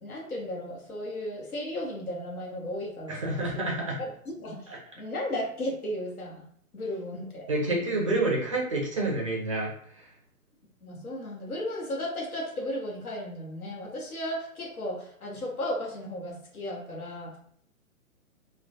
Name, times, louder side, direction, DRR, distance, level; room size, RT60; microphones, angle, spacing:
voice 1, 0.0-3.6 4.0-4.6 5.0-6.4 6.7-7.4 7.7-8.0 10.8-17.4, left 1 dB, 80° left, -2 dB, 0.8 m, -35 dB
voice 2, 3.1-4.0 4.7-4.8 7.5-10.1, right 2 dB, 25° right, -2 dB, 0.4 m, -29 dB
2.2 x 2.1 x 2.8 m, 0.63 s
figure-of-eight pair, 120°, 43 cm